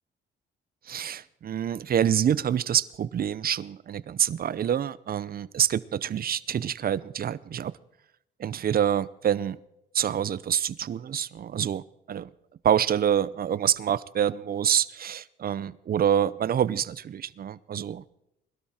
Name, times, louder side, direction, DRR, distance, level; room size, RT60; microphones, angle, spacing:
voice 1, 0.9-7.7 8.4-9.6 9.9-12.3 12.6-18.0, right 9 dB, 50° right, 18 dB, 0.7 m, -26 dB
20.5 x 12.5 x 4.4 m, 0.82 s
cardioid pair, 90°, 20 cm